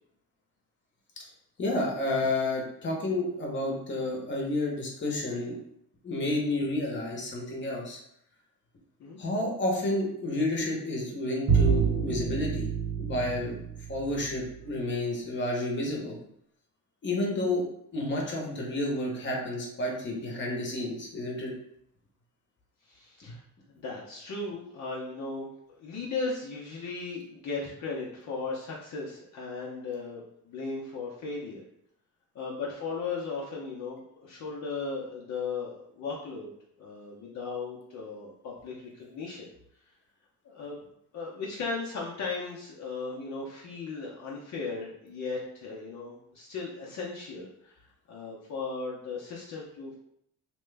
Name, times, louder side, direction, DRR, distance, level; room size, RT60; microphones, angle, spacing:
voice 1, 1.6-5.6 6.0-8.0 9.2-12.7 13.0-13.6 13.9-16.2 17.0-17.7 17.9-21.5, left 2 dB, 35° left, -1 dB, 0.9 m, -30 dB
Bowed string instrument, 11.5-14.5, right 6 dB, 50° right, 0.8 m, -27 dB
voice 2, 22.8-23.4 23.7-31.6 32.3-36.5 36.8-39.5 40.4-40.8 41.1-47.8 48.1-50.0, left 4 dB, 60° left, -4 dB, 0.7 m, -36 dB
3.0 x 2.2 x 3.3 m, 0.72 s
cardioid pair, 110°, 33 cm